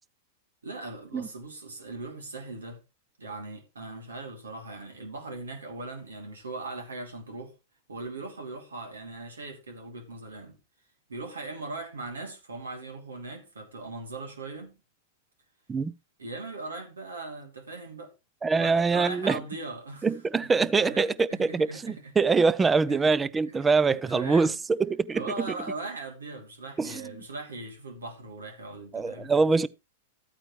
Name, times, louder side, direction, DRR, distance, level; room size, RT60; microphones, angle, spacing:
voice 1, 0.6-2.8 3.2-7.5 7.9-10.6 11.1-14.8 16.2-18.1 18.6-20.1 20.6-22.1 22.9-23.1 23.5-24.6 25.1-29.6, right 3 dB, 85° right, 3.0 m, -39 dB
voice 2, 18.4-19.4 20.0-25.5 26.8-27.1 28.9-29.7, right 4 dB, 15° right, 0.6 m, -24 dB
13.0 x 9.0 x 3.2 m
hypercardioid pair, 105°, 0 cm